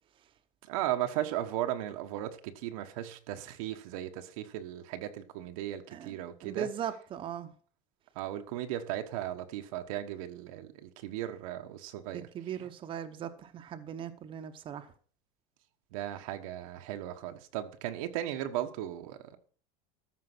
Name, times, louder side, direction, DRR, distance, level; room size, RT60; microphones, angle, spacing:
voice 1, 0.6-6.7 8.1-12.3 15.9-19.4, right 12 dB, 85° right, 1.3 m, -36 dB
voice 2, 6.4-7.5 12.1-14.9, right 9 dB, 30° right, 0.9 m, -39 dB
13.5 x 5.4 x 6.1 m
cardioid pair, 155°, 17 cm